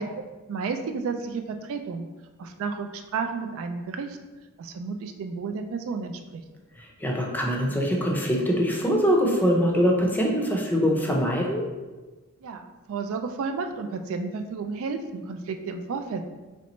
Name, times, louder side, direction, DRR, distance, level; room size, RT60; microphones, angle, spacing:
voice 1, 0.0-2.1 2.4-4.2 4.6-6.4 12.4-16.2, right 4 dB, 65° right, 6 dB, 0.3 m, -32 dB
voice 2, 6.8-11.7, equal, 10° left, 0 dB, 0.5 m, -23 dB
4.1 x 3.2 x 3.0 m, 1.2 s
head